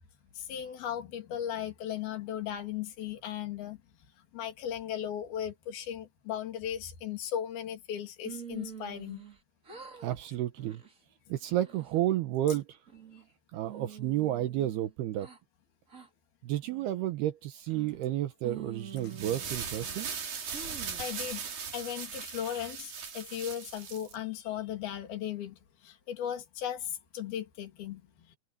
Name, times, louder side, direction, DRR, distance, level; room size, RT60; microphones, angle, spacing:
voice 1, 0.4-3.8 4.3-9.2 21.0-21.4 21.7-28.0, left 10 dB, 65° left, 4.8 m, -37 dB
sound 1, 8.2-9.4 9.6-10.2 10.6-10.9 11.4-12.0 12.5-13.3 13.6-15.4 15.9-16.1 16.6-17.1 17.7-18.1 18.4-20.0 20.5-21.1, right 7 dB, 20° right, 3.0 m, -47 dB
voice 2, 10.0-10.8 11.3-12.8 13.5-15.3 16.4-20.1, right 13 dB, 75° right, 3.0 m, -31 dB
sound 2, 19.0-24.2, right 6 dB, 55° right, 5.3 m, -39 dB
omnidirectional pair, 4.9 m